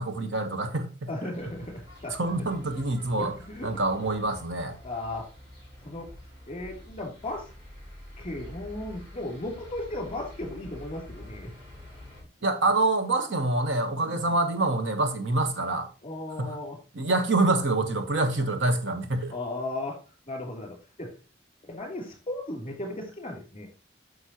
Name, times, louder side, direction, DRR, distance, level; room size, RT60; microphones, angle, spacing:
voice 1, 0.0-0.9 1.2-1.3 2.1-3.3 3.6-4.8 12.4-15.9 16.4-16.6 16.9-19.3, right 2 dB, 80° right, 1.3 m, -26 dB
voice 2, 1.1-2.5 3.2-3.7 4.8-5.3 5.8-6.1 6.5-7.5 8.2-11.5 14.0-14.3 16.0-16.8 19.3-20.0 20.3-21.1 21.6-23.7, left 2 dB, 30° left, 3.0 m, -36 dB
sound 1, 1.3-12.2, left 1 dB, 25° right, 5.0 m, -47 dB
9.5 x 6.5 x 2.9 m
head